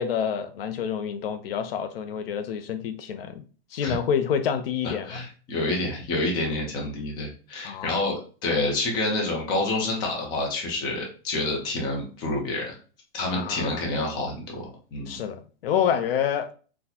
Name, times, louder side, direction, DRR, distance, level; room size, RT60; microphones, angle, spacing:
voice 1, 0.0-3.4 3.7-5.2 7.6-8.0 13.3-13.8 15.1-16.5, left 8 dB, 65° left, 0.5 m, -28 dB
voice 2, 4.8-12.8 13.1-14.6 14.9-15.2, left 2 dB, 15° left, 0.5 m, -28 dB
4.0 x 2.1 x 2.7 m
supercardioid pair, 165°, 31 cm